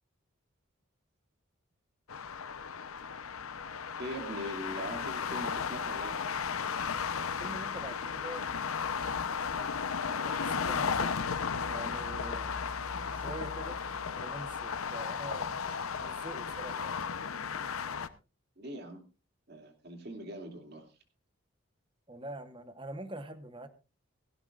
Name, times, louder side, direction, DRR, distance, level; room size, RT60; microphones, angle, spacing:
sound 1, 2.1-18.1, left 6 dB, 80° left, 0.8 m, -35 dB
voice 1, 4.0-6.2 18.6-19.1 19.5-20.9, equal, 50° right, 5 dB, 2.5 m, -41 dB
voice 2, 7.4-8.7 9.1-11.2 11.7-12.5 13.1-13.8 14.2-17.0 22.1-23.7, right 1 dB, 25° right, 11 dB, 1.1 m, -45 dB
17.0 x 16.5 x 2.5 m, 0.30 s
head